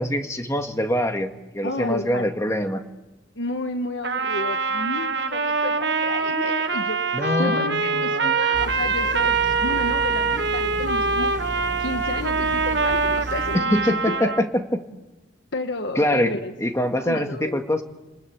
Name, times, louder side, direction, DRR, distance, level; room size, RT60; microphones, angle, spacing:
voice 1, 0.0-2.8 7.1-8.4 13.5-14.8 16.0-16.3 16.6-17.8, left 1 dB, 15° left, 5 dB, 1.9 m, -24 dB
voice 2, 1.6-2.3 3.4-7.1 7.4-11.4 11.8-14.3 15.5-16.5 16.9-17.6, left 2 dB, 70° left, 7 dB, 1.3 m, -31 dB
Trumpet, 4.0-14.5, right 4 dB, 65° right, 1.6 m, -24 dB
sound 1, 8.5-13.6, right 1 dB, 40° right, 1.3 m, -34 dB
30.0 x 20.5 x 8.4 m, 1.0 s
head